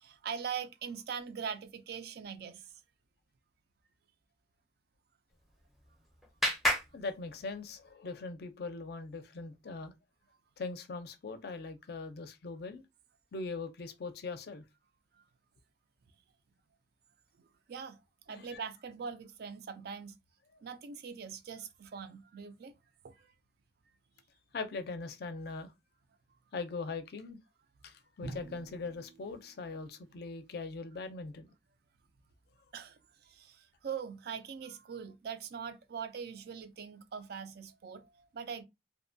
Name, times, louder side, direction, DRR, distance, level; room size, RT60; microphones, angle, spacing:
voice 1, 0.0-2.7 17.7-18.0 18.3-20.1 20.6-22.7 23.0-23.1 32.7-38.6, right 6 dB, 60° right, 0.4 m, -42 dB
Clapping, 5.3-7.9, equal, ahead, 0.5 m, -35 dB
voice 2, 6.9-9.9 10.6-12.8 13.3-14.6 18.3-18.6 24.5-25.7 26.5-27.4 27.8-31.5, left 3 dB, 60° left, 0.4 m, -41 dB
Drum, 28.2-30.2, right 2 dB, 85° right, 0.9 m, -48 dB
2.6 x 2.1 x 2.6 m
head